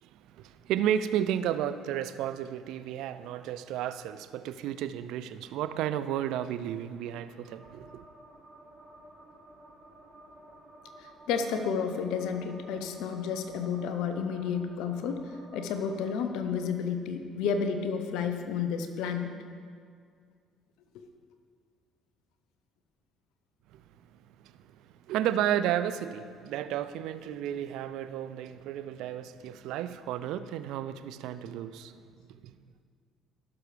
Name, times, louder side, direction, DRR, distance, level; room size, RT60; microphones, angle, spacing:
voice 1, 0.0-8.0 23.7-23.8 24.4-31.9 32.3-32.6, right 10 dB, 70° right, 0.4 m, -33 dB
sound 1, 7.4-16.3, right 1 dB, 50° right, 1.9 m, -53 dB
voice 2, 11.0-19.3 20.9-21.1, left 6 dB, 75° left, 0.8 m, -31 dB
16.0 x 6.4 x 3.4 m
hypercardioid pair, 60°, 0 cm